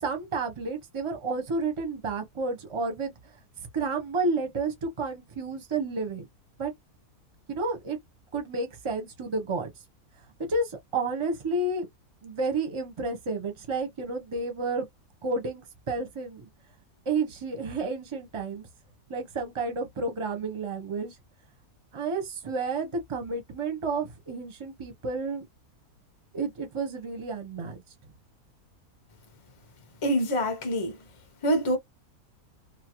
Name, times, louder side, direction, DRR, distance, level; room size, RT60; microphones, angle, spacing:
voice 1, 0.0-3.1 3.7-6.3 6.6-6.7 7.5-8.0 8.3-9.7 10.4-11.9 12.2-14.9 15.2-16.5 17.1-18.7 19.1-21.1 21.9-25.5 26.3-27.8, right 3 dB, 30° right, 0.6 m, -31 dB
voice 2, 30.0-31.0 31.4-31.8, equal, 35° left, 0.5 m, -25 dB
2.8 x 2.2 x 2.9 m
omnidirectional pair, 1.6 m